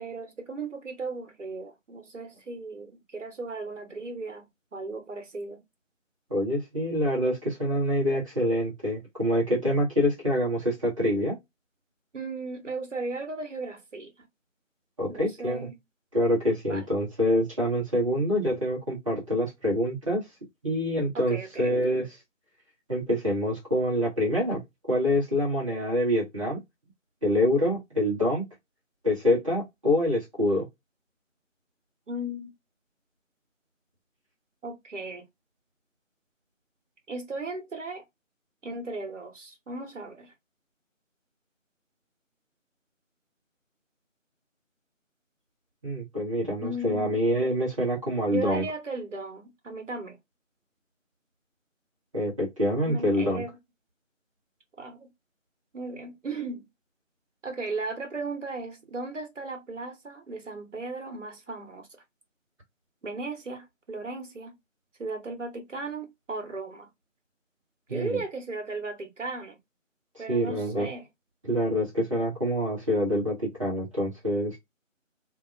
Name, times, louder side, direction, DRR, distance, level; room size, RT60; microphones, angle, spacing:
voice 1, 0.0-5.6 12.1-14.3 15.1-15.8 16.7-16.8 21.1-21.8 32.1-32.5 34.6-35.3 37.1-38.0 38.6-40.3 46.6-47.1 48.3-50.2 52.8-53.5 54.8-55.1 55.7-56.7 57.4-61.9 63.0-64.5 65.0-66.9 67.9-69.6 70.2-71.0, right 2 dB, 65° right, 1.1 m, -36 dB
voice 2, 6.3-11.4 15.0-15.7 16.1-20.2 20.6-22.1 22.9-26.6 27.2-28.4 29.0-30.7 45.8-48.6 52.1-53.4 67.9-68.2 70.3-70.9 71.4-74.6, left 1 dB, 25° right, 1.2 m, -26 dB
2.8 x 2.0 x 2.4 m
figure-of-eight pair, 165°, 40 cm